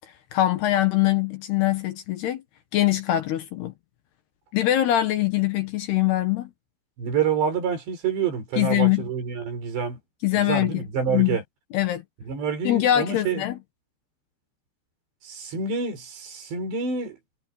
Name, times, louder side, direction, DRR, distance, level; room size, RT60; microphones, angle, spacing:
voice 1, 0.3-2.4 2.7-3.7 4.5-6.5 8.6-9.1 10.2-11.4 11.7-12.0 12.6-13.6, left 14 dB, 75° left, 3.4 m, -23 dB
voice 2, 7.0-10.0 10.4-11.4 12.3-13.4 15.2-17.2, right 6 dB, 90° right, 7.9 m, -27 dB
omnidirectional pair, 4.8 m